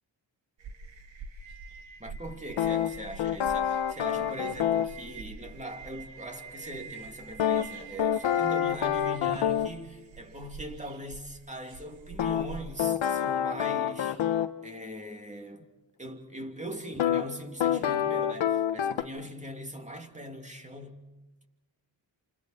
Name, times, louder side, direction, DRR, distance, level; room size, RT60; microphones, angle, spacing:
sound 1, 0.6-12.9, right 4 dB, 80° right, 1.9 m, -46 dB
voice 1, 2.0-14.4 14.6-15.7 16.0-21.0, equal, 15° right, 2.8 m, -41 dB
sound 2, 2.6-4.9 7.4-9.8 12.2-14.5 17.0-17.2 17.6-19.0, left 9 dB, 85° left, 1.2 m, -27 dB
29.5 x 28.0 x 4.4 m
cardioid pair, 75°, 45 cm